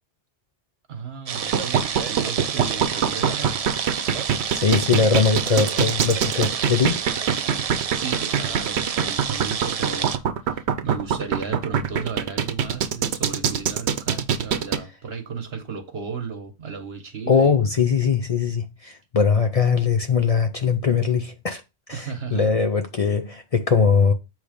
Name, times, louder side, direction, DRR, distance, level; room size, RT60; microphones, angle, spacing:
voice 1, 0.9-3.6 7.9-10.1 10.5-17.6 21.9-22.5, right 5 dB, 70° right, 1.4 m, -34 dB
sound 1, 1.3-10.2, right 7 dB, 50° right, 0.5 m, -29 dB
sound 2, 1.3-14.8, right 7 dB, 85° right, 1.0 m, -23 dB
voice 2, 4.6-7.0 17.3-21.6 21.9-24.1, left 5 dB, 40° left, 0.6 m, -21 dB
8.4 x 3.2 x 5.0 m
omnidirectional pair, 1.1 m